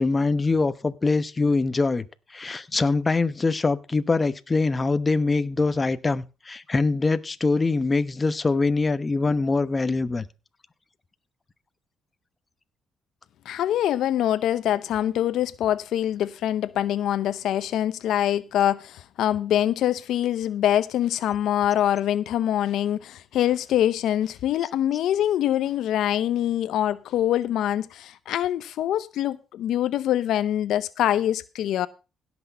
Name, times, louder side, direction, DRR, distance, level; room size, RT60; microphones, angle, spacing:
voice 1, 0.0-2.1 2.3-10.3, left 3 dB, 25° left, 0.9 m, -23 dB
voice 2, 13.5-31.9, left 11 dB, 80° left, 0.7 m, -24 dB
16.5 x 6.2 x 5.6 m
cardioid pair, 90°, 0 cm